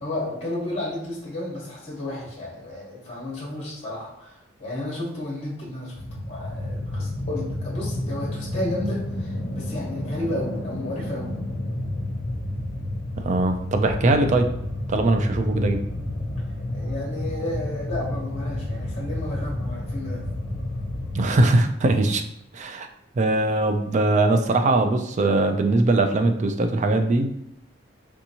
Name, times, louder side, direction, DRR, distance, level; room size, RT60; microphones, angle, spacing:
voice 1, 0.0-11.3 16.7-20.2, left 1 dB, 35° left, -3 dB, 1.0 m, -32 dB
sound 1, 5.9-21.4, left 1 dB, 60° left, 0.6 m, -30 dB
voice 2, 13.2-14.5 14.9-15.8 21.1-22.2 22.5-22.9 23.2-27.3, right 2 dB, 40° right, 6 dB, 0.3 m, -21 dB
3.4 x 2.8 x 2.8 m, 0.76 s
head